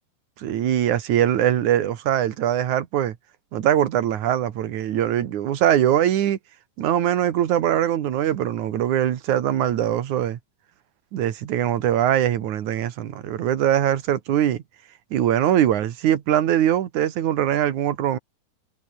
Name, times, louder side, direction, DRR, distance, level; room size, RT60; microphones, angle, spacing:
voice 1, 0.4-3.2 3.5-6.4 6.8-10.4 11.1-14.6 15.1-18.2, right 11 dB, 60° right, 2.7 m, -22 dB
omnidirectional pair, 4.2 m